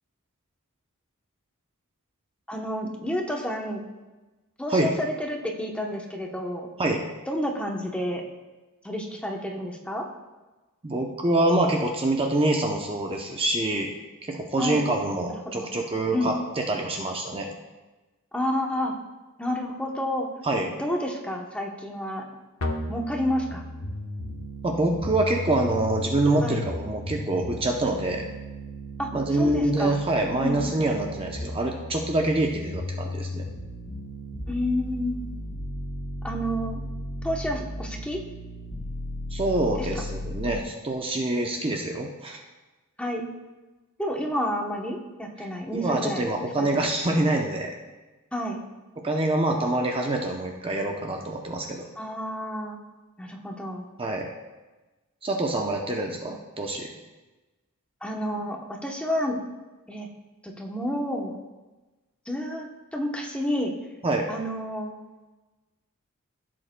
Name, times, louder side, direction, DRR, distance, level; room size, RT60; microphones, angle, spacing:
voice 1, 2.5-3.8 4.6-6.7 7.3-8.2 8.8-10.1 14.6-14.8 15.5-15.7 16.1-16.3 18.3-18.9 19.4-20.3 20.8-22.3 22.9-23.6 26.4-26.6 29.0-30.0 30.4-30.6 34.5-35.2 36.2-36.8 37.2-38.2 39.8-39.9 40.4-40.6 43.0-43.3 44.0-46.7 48.3-48.6 52.0-52.8 53.2-53.9 58.0-59.5 59.9-60.1 60.4-61.3 62.3-63.7 64.3-64.9, equal, 5° left, 0 dB, 0.9 m, -30 dB
voice 2, 10.8-13.9 14.2-17.5 20.4-20.7 24.6-28.2 29.1-33.4 39.3-42.4 45.7-47.7 49.0-51.9 54.0-54.3 55.2-56.9 64.0-64.3, right 2 dB, 25° right, 2 dB, 0.6 m, -26 dB
sound 1, 22.6-40.6, left 1 dB, 80° left, 1.0 m, -35 dB
15.0 x 7.6 x 2.2 m, 1.2 s
head